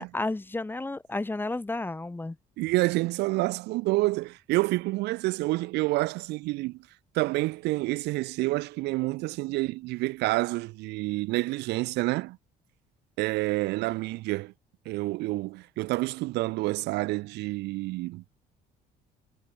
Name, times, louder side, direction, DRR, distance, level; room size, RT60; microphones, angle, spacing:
voice 1, 0.0-2.4, left 2 dB, 10° left, 2.1 m, -32 dB
voice 2, 2.6-6.8 7.1-12.4 13.2-14.5 14.9-18.2, right 21 dB, 80° right, 0.4 m, -28 dB
cardioid pair, 110°, 17 cm